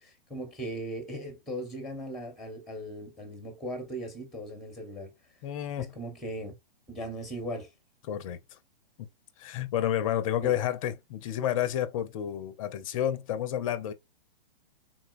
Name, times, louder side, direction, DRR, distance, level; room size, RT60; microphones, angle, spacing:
voice 1, 0.0-5.1 5.8-6.5 6.9-7.7 10.4-10.6, right 1 dB, ahead, 1.0 m, -38 dB
voice 2, 5.4-5.9 8.1-8.4 9.4-13.9, left 10 dB, 35° left, 0.5 m, -30 dB
3.9 x 2.2 x 2.4 m
hypercardioid pair, 125°, 29 cm